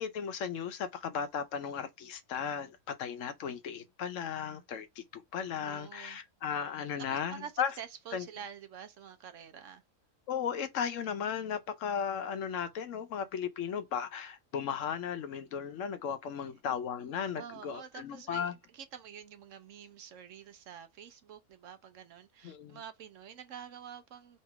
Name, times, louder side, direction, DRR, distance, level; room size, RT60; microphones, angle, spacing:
voice 1, 0.0-7.7 8.1-8.2 10.3-18.5 22.4-22.8, left 7 dB, 70° left, 0.9 m, -36 dB
voice 2, 5.6-6.2 7.1-9.8 17.4-24.4, right 8 dB, 65° right, 0.9 m, -48 dB
3.2 x 2.8 x 4.6 m
omnidirectional pair, 1.5 m